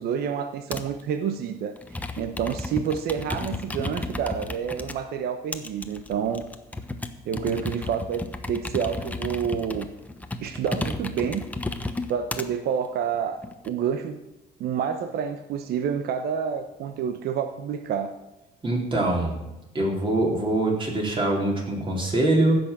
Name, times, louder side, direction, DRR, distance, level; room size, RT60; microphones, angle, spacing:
voice 1, 0.0-6.5 7.2-9.9 10.4-11.4 12.1-14.2 14.6-18.2, right 7 dB, 70° right, 8 dB, 1.0 m, -28 dB
Computer keyboard, 0.7-1.0 1.8-5.0 5.5-12.5 13.1-13.7, left 2 dB, 10° left, 1.0 m, -33 dB
voice 2, 18.6-19.4 19.7-22.6, right 2 dB, 30° right, -1 dB, 4.2 m, -23 dB
15.5 x 6.3 x 7.4 m, 0.96 s
cardioid pair, 110°, 17 cm